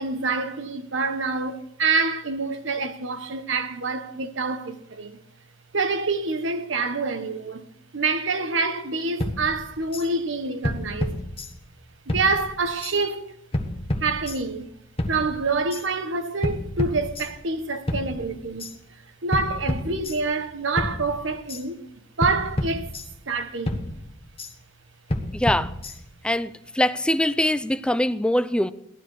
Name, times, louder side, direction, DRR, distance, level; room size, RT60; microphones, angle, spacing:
voice 1, 0.0-5.2 5.7-7.7 7.9-11.1 12.1-13.2 14.0-14.7 15.1-18.7 19.2-21.8 22.2-22.9 23.3-23.8, right 3 dB, 75° right, 1.3 m, -26 dB
sound 1, 9.2-10.1 10.6-11.8 12.1-13.0 13.5-14.6 15.0-15.8 16.4-17.6 17.9-18.7 19.3-20.5 20.8-21.6 22.2-23.4 23.7-24.5 25.1-26.3, left 1 dB, 30° left, 1.4 m, -30 dB
voice 2, 25.3-25.7 26.2-28.7, left 1 dB, 5° left, 0.5 m, -23 dB
17.5 x 12.5 x 4.8 m
head